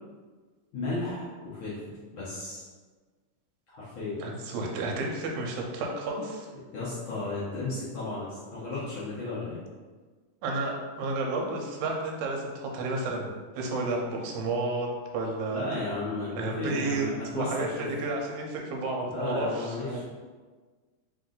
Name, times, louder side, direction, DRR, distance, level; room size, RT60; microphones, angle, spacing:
voice 1, 0.7-1.8 2.1-2.6 3.7-4.2 6.7-9.6 15.5-17.8 19.0-20.1, left 3 dB, 75° left, -9 dB, 1.1 m, -34 dB
voice 2, 4.2-6.5 10.4-14.9 15.1-15.6 16.3-17.1 17.3-20.1, right 3 dB, 75° right, 0 dB, 2.0 m, -31 dB
4.8 x 2.6 x 3.8 m, 1.4 s
omnidirectional pair, 3.7 m